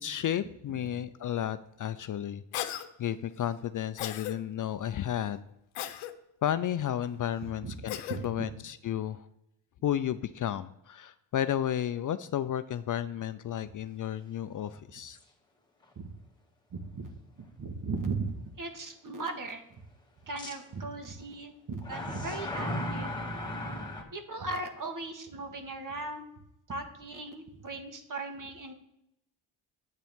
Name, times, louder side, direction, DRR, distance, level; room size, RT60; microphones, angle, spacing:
voice 1, 0.0-2.7 3.0-5.4 6.4-9.3 9.8-15.2, left 10 dB, 45° left, 12 dB, 0.5 m, -32 dB
Cough, 2.5-2.9 4.0-4.3 5.8-6.1 7.9-8.2, left 12 dB, 85° left, 0.9 m, -35 dB
voice 2, 8.1-8.5 16.0-16.1 16.7-17.1 17.6-18.3 18.6-19.6 20.2-23.1 24.1-26.3 26.7-28.7, right 3 dB, 40° right, 5 dB, 1.8 m, -37 dB
sound 1, 15.1-15.2 15.8-15.9 20.4-20.5 21.8-24.0, left 1 dB, 10° left, 2.1 m, -35 dB
9.0 x 8.4 x 3.6 m, 0.81 s
cardioid pair, 75°, 47 cm